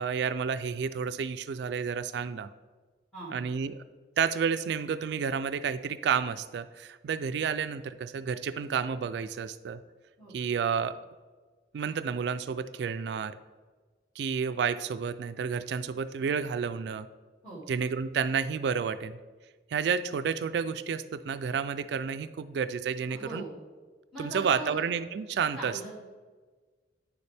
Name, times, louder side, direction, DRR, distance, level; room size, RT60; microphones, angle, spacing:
voice 1, 0.0-2.5 3.3-3.8 4.2-9.8 10.3-11.0 11.7-13.4 14.2-17.1 17.7-19.2 19.7-23.4 24.2-25.9, right 6 dB, 65° right, 12 dB, 0.3 m, -30 dB
voice 2, 23.1-23.5 24.1-24.8 25.6-25.9, right 2 dB, 5° left, -8 dB, 2.3 m, -40 dB
9.5 x 6.9 x 3.4 m, 1.4 s
head